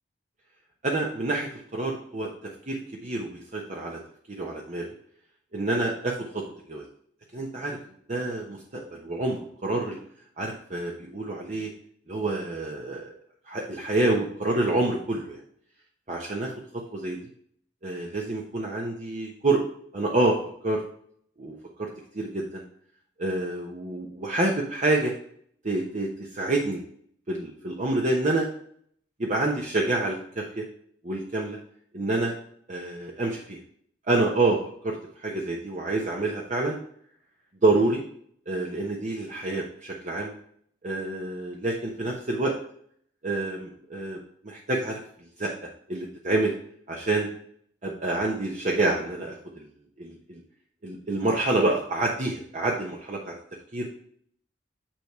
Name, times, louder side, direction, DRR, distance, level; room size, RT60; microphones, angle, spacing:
voice 1, 0.8-2.3 2.7-4.0 4.3-4.9 5.5-6.4 6.7-6.8 7.3-7.8 8.1-10.0 10.4-11.7 12.1-13.1 13.5-15.4 16.1-16.5 16.9-17.2 17.8-19.6 19.9-20.3 20.6-20.8 21.4-21.9 22.1-22.6 23.2-25.1 25.6-26.8 27.3-28.5 29.2-30.6 31.0-31.6 31.9-32.3 32.7-33.6 34.1-34.6 34.8-36.8 37.6-38.0 38.5-40.3 40.8-42.5 43.2-44.2 44.4-45.0 45.4-45.5 45.9-46.5 46.9-47.3 47.8-49.7 50.0-50.4 50.8-53.3 53.7-53.9, right 2 dB, 45° right, -1 dB, 1.0 m, -27 dB
9.0 x 3.5 x 4.6 m, 0.63 s
head